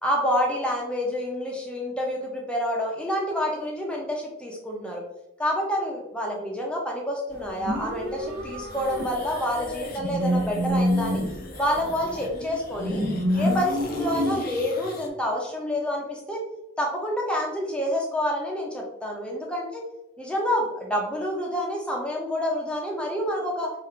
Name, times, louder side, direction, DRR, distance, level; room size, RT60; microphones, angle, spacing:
voice 1, 0.0-5.0 5.4-11.2 11.6-13.0 13.3-16.4 16.8-19.8 20.2-23.7, equal, 5° left, -2 dB, 0.8 m, -28 dB
sound 1, 7.4-9.3 9.6-12.2 12.8-14.4, equal, 55° right, 0.9 m, -27 dB
sound 2, 8.7-15.1, left 2 dB, 45° left, 0.6 m, -40 dB
3.6 x 2.7 x 4.5 m, 0.88 s
head